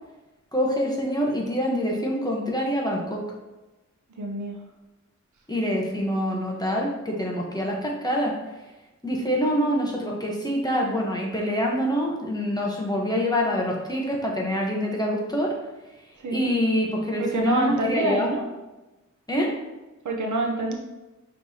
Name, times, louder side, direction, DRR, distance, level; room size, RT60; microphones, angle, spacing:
voice 1, 0.5-3.2 5.5-8.4 9.0-15.5 16.3-18.3 19.3-19.5, equal, 15° left, -2 dB, 0.9 m, -25 dB
voice 2, 4.2-4.6 16.2-16.4 17.2-18.5 20.0-20.7, right 2 dB, 85° right, 2 dB, 0.7 m, -26 dB
5.8 x 3.2 x 2.8 m, 1.1 s
wide cardioid pair, 75°, 29 cm